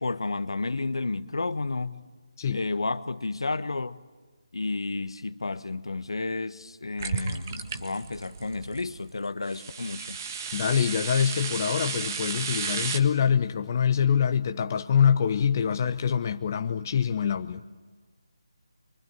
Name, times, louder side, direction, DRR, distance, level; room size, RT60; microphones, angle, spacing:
voice 1, 0.0-2.0 2.5-4.0 4.5-10.2, left 3 dB, 65° left, 1.1 m, -31 dB
sound 1, 7.0-9.0 9.5-13.0, right 5 dB, 35° right, 1.6 m, -34 dB
voice 2, 10.5-17.6, left 7 dB, 35° left, 0.9 m, -25 dB
24.5 x 24.5 x 8.9 m
figure-of-eight pair, 155°, 3 cm